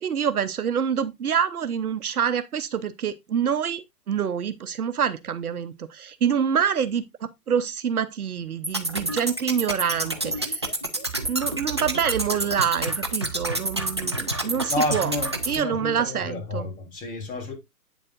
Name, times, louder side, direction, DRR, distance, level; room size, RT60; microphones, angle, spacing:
voice 1, 0.0-10.7 11.2-15.1 15.5-16.7, right 8 dB, 65° right, 0.9 m, -26 dB
sound 1, 8.6-15.6, right 2 dB, 20° right, 0.4 m, -28 dB
voice 2, 14.7-17.5, left 2 dB, 15° left, 3.2 m, -30 dB
8.9 x 7.4 x 2.4 m
figure-of-eight pair, 130°, 48 cm